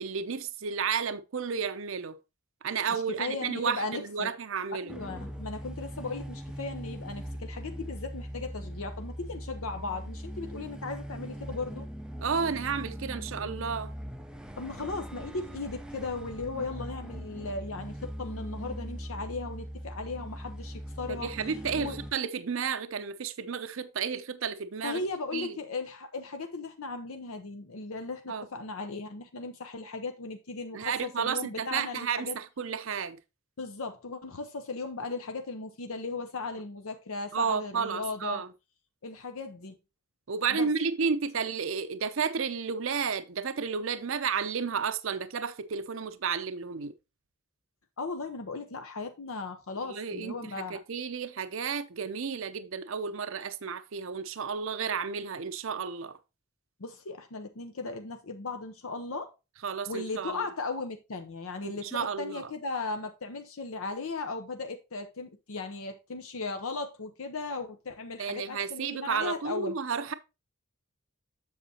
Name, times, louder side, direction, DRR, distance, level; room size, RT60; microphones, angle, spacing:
voice 1, 0.0-2.2 2.6-4.9 12.2-13.9 21.1-25.0 25.3-25.6 28.3-28.4 30.7-33.2 37.3-38.5 40.3-46.9 49.9-50.4 50.7-56.2 59.6-60.4 61.6-62.5 68.2-70.1, right 6 dB, 65° right, 0.6 m, -32 dB
voice 2, 2.9-4.3 4.8-11.9 14.6-21.3 21.7-22.0 24.8-32.4 33.6-38.4 39.0-39.7 40.5-40.7 48.0-50.8 56.8-59.3 59.9-69.8, left 3 dB, 80° left, 0.8 m, -37 dB
sound 1, 4.9-22.1, equal, 5° right, 0.5 m, -40 dB
7.9 x 6.6 x 2.8 m
head